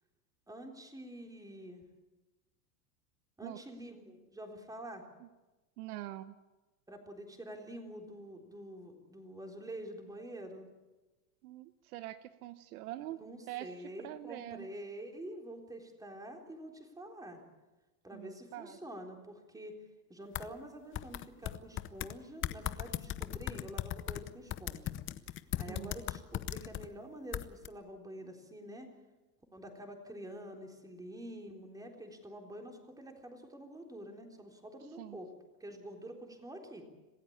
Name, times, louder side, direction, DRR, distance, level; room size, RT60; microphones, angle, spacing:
voice 1, 0.5-1.9 3.4-5.1 6.9-10.7 13.1-17.4 18.0-19.8 20.1-25.0 25.3-28.9 29.5-35.3 35.6-36.8, right 1 dB, 5° right, 2 dB, 3.8 m, -47 dB
voice 2, 5.8-6.3 11.4-13.2 13.5-14.7 18.1-18.8 25.7-25.9 35.0-35.2, right 15 dB, 65° right, 13 dB, 1.1 m, -44 dB
sound 1, 20.3-20.5 20.9-22.1 22.4-26.9 27.3-27.7, left 13 dB, 25° left, 0.8 m, -37 dB
26.5 x 15.5 x 8.8 m, 1.1 s
supercardioid pair, 130°, 48 cm